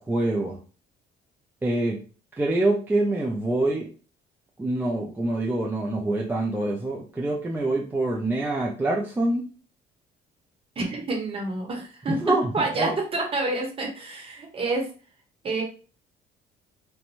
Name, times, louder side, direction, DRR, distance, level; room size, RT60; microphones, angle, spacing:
voice 1, 0.1-0.6 1.6-2.0 2.4-3.9 4.6-9.5 12.1-12.9, right 2 dB, 10° right, -3 dB, 0.4 m, -25 dB
voice 2, 10.8-12.2 12.5-14.9 15.4-15.6, right 2 dB, 35° right, 0 dB, 0.9 m, -28 dB
2.5 x 2.2 x 2.9 m, 0.37 s
cardioid pair, 110°, 17 cm